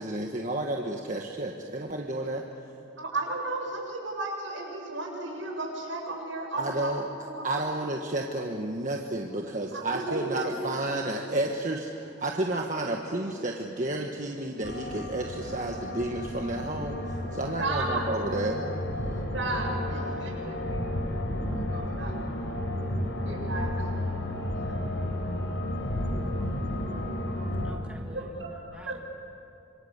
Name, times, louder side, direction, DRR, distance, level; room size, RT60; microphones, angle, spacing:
voice 1, 0.0-2.4 6.5-7.1 7.4-18.6, right 2 dB, 40° right, 1 dB, 1.5 m, -31 dB
voice 2, 3.0-6.9 7.3-7.7 9.7-10.6 11.1-11.2 17.6-18.1 19.3-20.9 21.7-22.1 23.2-23.9 24.7-24.8 28.1-29.0, right 2 dB, 75° right, 0 dB, 7.0 m, -34 dB
sound 1, 14.6-27.7, left 1 dB, 75° left, 4.3 m, -32 dB
voice 3, 20.1-20.9 27.6-29.0, equal, 5° right, 0 dB, 1.9 m, -48 dB
26.5 x 26.0 x 8.2 m, 2.6 s
head